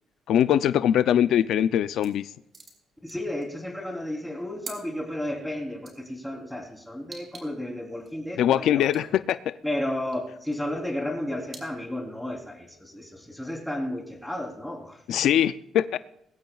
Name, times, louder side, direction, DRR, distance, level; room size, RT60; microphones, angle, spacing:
voice 1, 0.3-2.3 8.4-9.5 15.1-16.0, left 10 dB, 80° left, 14 dB, 0.4 m, -22 dB
sound 1, 2.0-2.1 2.4-3.7 4.1-4.8 5.8-6.2 7.1-7.4 7.8-8.1 8.8-9.0 10.1-10.6 11.5-11.6, right 4 dB, 40° right, 4.1 m, -44 dB
voice 2, 3.0-9.1 9.6-15.2, left 1 dB, 5° left, 0 dB, 3.5 m, -33 dB
21.0 x 16.0 x 2.4 m, 0.79 s
cardioid pair, 90°, 0 cm